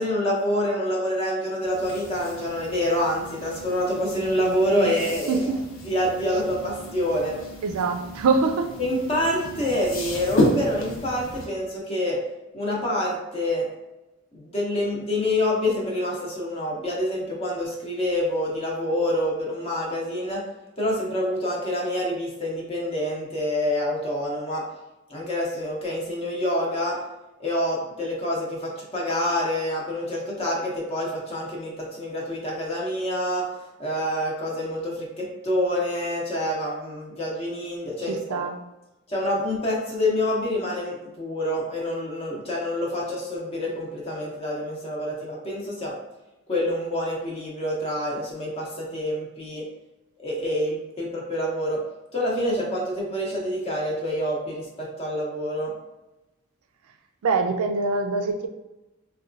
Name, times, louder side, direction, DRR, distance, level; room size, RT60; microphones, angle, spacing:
voice 1, 0.0-5.4 5.8-7.4 8.8-12.2 12.5-13.7 14.3-20.4 20.8-24.6 25.1-27.0 27.4-33.4 33.8-38.5 39.1-45.9 46.5-49.6 50.2-51.8 52.1-55.7, left 1 dB, 30° left, -4 dB, 0.6 m, -27 dB
sound 1, 1.6-11.5, left 1 dB, 65° left, 0.7 m, -32 dB
voice 2, 5.3-5.6 7.6-8.7 38.1-38.6 57.2-58.5, right 4 dB, 85° right, 6 dB, 0.4 m, -24 dB
4.0 x 2.2 x 2.5 m, 1.0 s
head